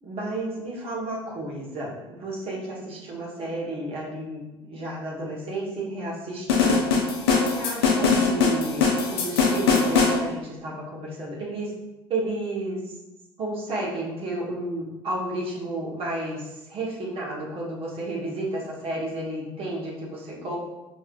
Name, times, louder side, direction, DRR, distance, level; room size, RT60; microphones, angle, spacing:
voice 1, 0.0-7.0 7.3-11.7 12.1-13.0 13.4-20.6, right 1 dB, 50° right, -4 dB, 1.2 m, -32 dB
sound 1, 6.5-10.2, left 4 dB, 80° left, 0.6 m, -21 dB
4.4 x 3.1 x 2.5 m, 1.0 s
hypercardioid pair, 65°, 13 cm